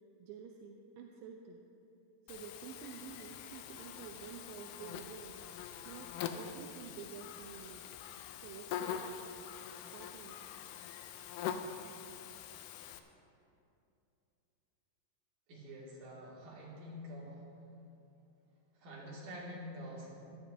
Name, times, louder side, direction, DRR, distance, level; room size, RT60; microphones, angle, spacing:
voice 1, 0.2-1.6 2.3-5.4 5.9-8.0 8.4-9.0 9.9-10.5, right 7 dB, 85° right, 2 dB, 2.3 m, -50 dB
Buzz, 2.3-13.0, left 8 dB, 80° left, 1.9 m, -44 dB
voice 2, 15.5-17.4 18.8-20.2, equal, 65° right, -6 dB, 3.8 m, -47 dB
18.0 x 11.5 x 2.7 m, 2.7 s
omnidirectional pair, 4.1 m